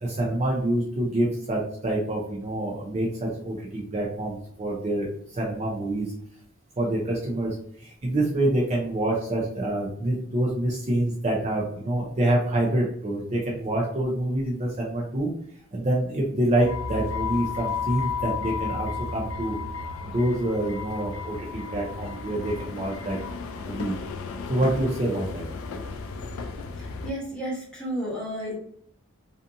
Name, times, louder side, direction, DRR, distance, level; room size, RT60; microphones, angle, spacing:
voice 1, 0.0-6.1 6.8-15.3 15.7-19.5 20.0-23.2 23.6-24.0 24.5-25.4, right 1 dB, 35° right, -3 dB, 0.5 m, -26 dB
sound 1, 16.6-27.1, left 5 dB, 75° left, 0.3 m, -33 dB
voice 2, 26.8-28.6, equal, 5° left, -6 dB, 1.0 m, -32 dB
2.5 x 2.5 x 2.6 m, 0.66 s
head